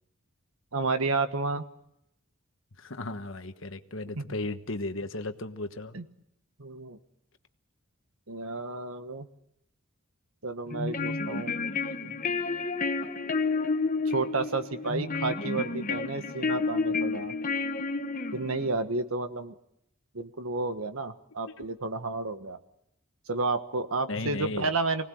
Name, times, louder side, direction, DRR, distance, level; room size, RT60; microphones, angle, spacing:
voice 1, 0.7-1.6 4.1-4.2 5.9-6.0 6.6-7.0 8.3-9.3 10.4-11.5 12.0-12.2 14.0-17.3 18.3-19.5 20.1-22.6 23.3-25.1, right 3 dB, 80° right, 9 dB, 1.4 m, -31 dB
voice 2, 2.8-5.9 21.4-21.5 24.1-24.7, left 2 dB, 65° left, 8 dB, 1.3 m, -35 dB
sound 1, 10.7-18.7, left 4 dB, 40° left, 1.0 m, -30 dB
25.0 x 18.5 x 7.9 m, 0.79 s
head